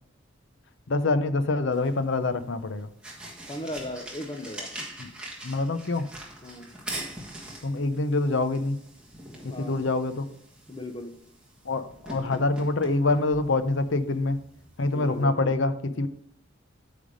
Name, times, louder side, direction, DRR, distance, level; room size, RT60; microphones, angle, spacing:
voice 1, 0.9-2.9 5.0-5.1 5.4-6.1 7.6-8.8 9.4-10.3 11.7-14.4 14.8-16.1, left 2 dB, 65° left, 11 dB, 0.7 m, -25 dB
sound 1, 1.7-15.3, right 1 dB, 5° right, 1.3 m, -43 dB
voice 2, 3.5-4.7 6.4-6.7 9.5-9.8 10.7-11.1 14.9-15.6, left 1 dB, 25° left, 4 dB, 0.7 m, -37 dB
8.7 x 3.5 x 5.2 m, 0.66 s
head